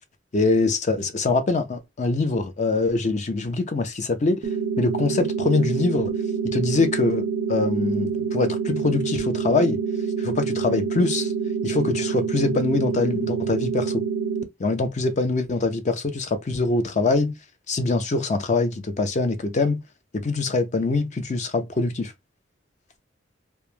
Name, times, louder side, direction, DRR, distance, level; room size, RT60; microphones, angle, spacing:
voice 1, 0.3-4.4 4.8-6.1 6.4-9.8 10.2-11.3 11.6-14.0 14.6-17.3 17.7-19.8 20.1-22.1, left 3 dB, 40° left, 0.5 m, -23 dB
sound 1, 4.4-14.4, right 6 dB, 70° right, 0.5 m, -26 dB
2.2 x 2.1 x 3.0 m
head